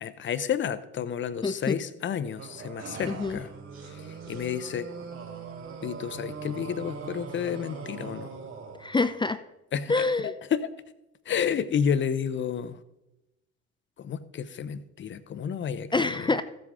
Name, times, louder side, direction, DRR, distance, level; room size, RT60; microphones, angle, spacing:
voice 1, 0.0-3.5 3.9-4.9 5.8-8.3 9.7-9.9 10.5-10.7 11.3-12.8 14.0-16.4, left 8 dB, 30° left, 15 dB, 0.9 m, -31 dB
voice 2, 1.4-1.8 3.1-3.4 8.8-9.4 9.9-10.3 15.9-16.4, left 3 dB, 15° left, 13 dB, 0.6 m, -26 dB
sound 1, 2.4-9.0, right 5 dB, 40° right, 3.9 m, -41 dB
15.0 x 7.7 x 3.8 m, 0.93 s
figure-of-eight pair, 60°, 36 cm